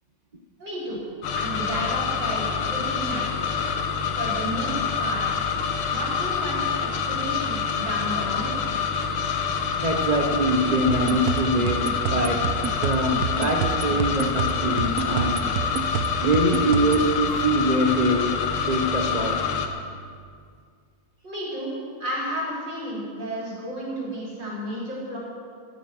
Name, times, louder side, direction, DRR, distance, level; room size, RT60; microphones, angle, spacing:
voice 1, 0.6-1.0 1.4-2.4 2.7-3.5 4.1-5.2 5.9-8.5 21.2-21.7 22.0-25.2, equal, 55° right, -6 dB, 5.4 m, -32 dB
sound 1, 1.2-19.7, left 6 dB, 90° left, 2.1 m, -27 dB
voice 2, 9.8-15.5 16.2-19.5, right 1 dB, 40° right, 3 dB, 0.6 m, -24 dB
sound 2, 10.9-17.1, right 9 dB, 75° right, 0.8 m, -29 dB
15.5 x 13.5 x 6.1 m, 2.1 s
omnidirectional pair, 2.4 m